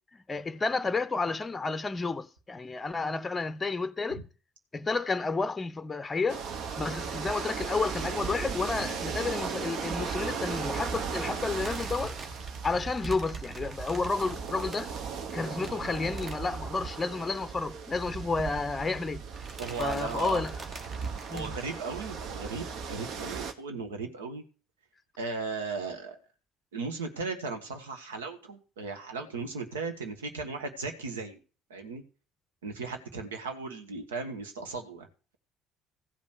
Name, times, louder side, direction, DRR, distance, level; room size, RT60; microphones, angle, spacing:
voice 1, 0.3-4.2 4.7-6.5 6.8-12.2 12.6-14.9 15.3-19.2 19.8-20.6 21.3-21.5, left 4 dB, 25° left, 0.6 m, -31 dB
sound 1, 6.3-23.5, right 6 dB, 55° right, 1.1 m, -37 dB
sound 2, 11.4-17.0 17.3-17.5 17.7-17.8 18.8-19.1 19.3-21.7, right 3 dB, 35° right, 1.6 m, -45 dB
voice 2, 19.6-20.4 21.3-24.4 25.2-26.2 26.7-31.4 31.7-32.0 32.6-35.1, right 4 dB, 75° right, 1.4 m, -36 dB
15.0 x 5.3 x 6.5 m
figure-of-eight pair, 50°, 0 cm